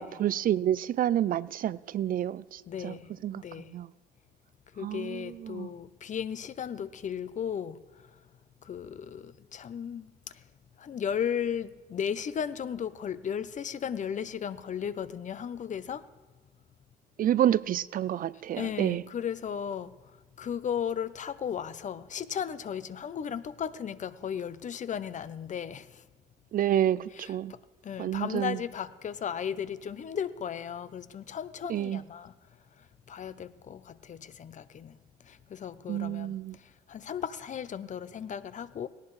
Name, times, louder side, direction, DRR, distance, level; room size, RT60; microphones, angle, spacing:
voice 1, 0.0-3.0 3.2-3.4 3.7-3.9 4.8-5.7 17.2-19.1 26.5-27.5 28.0-28.6 31.7-32.0 35.9-36.6, right 11 dB, 50° right, 0.4 m, -29 dB
voice 2, 2.7-3.8 4.7-8.1 8.6-10.4 10.8-16.1 18.6-19.9 20.4-26.0 27.1-27.6 27.8-32.3 32.8-35.0 35.2-38.9, left 8 dB, 45° left, 0.6 m, -35 dB
18.0 x 18.0 x 3.2 m
cardioid pair, 110°, 18 cm